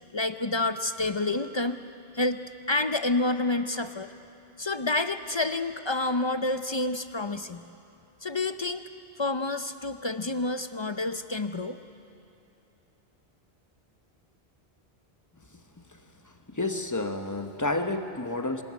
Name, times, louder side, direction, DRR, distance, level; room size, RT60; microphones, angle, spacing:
voice 1, 0.1-1.8 2.1-2.4 2.7-4.1 4.6-7.6 8.2-8.8 9.2-11.8, left 2 dB, 35° left, 9 dB, 0.5 m, -28 dB
voice 2, 16.2-18.6, left 2 dB, 20° left, 6 dB, 1.0 m, -30 dB
26.0 x 13.5 x 9.5 m, 2.7 s
omnidirectional pair, 1.1 m